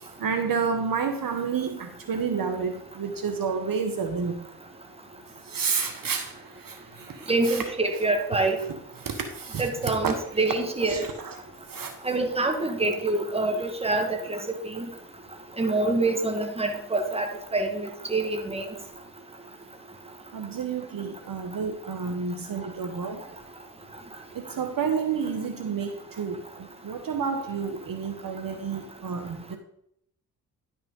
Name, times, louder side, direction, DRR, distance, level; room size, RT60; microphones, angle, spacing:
voice 1, 0.2-4.4 5.5-6.3 6.6-6.7 7.2-7.6 9.0-10.1 10.9-11.4 11.7-11.9 20.3-23.2 24.3-25.9 26.2-29.6, right 6 dB, 55° right, 6 dB, 1.2 m, -30 dB
voice 2, 7.3-8.6 9.6-11.1 12.0-14.4 14.7-14.9 15.6-18.7, right 2 dB, 15° right, 5 dB, 1.5 m, -26 dB
11.0 x 5.7 x 3.7 m, 0.72 s
cardioid pair, 60°, 40 cm